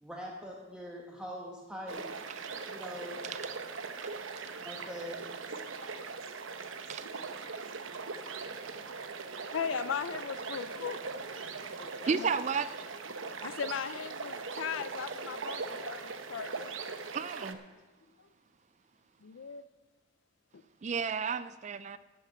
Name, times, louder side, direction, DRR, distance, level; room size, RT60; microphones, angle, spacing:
voice 1, 0.0-2.0 2.7-3.2 4.6-5.3, equal, 5° right, 1.2 m, -43 dB
sound 1, 1.9-17.5, right 4 dB, 85° right, 0.9 m, -40 dB
voice 2, 9.5-11.0 11.7-12.6 13.4-16.7 18.2-18.3 19.2-19.7 20.5-20.6, left 6 dB, 90° left, 0.5 m, -38 dB
voice 3, 12.1-12.8 17.1-17.6 20.8-22.0, right 6 dB, 35° right, 0.3 m, -32 dB
11.5 x 7.0 x 8.3 m
head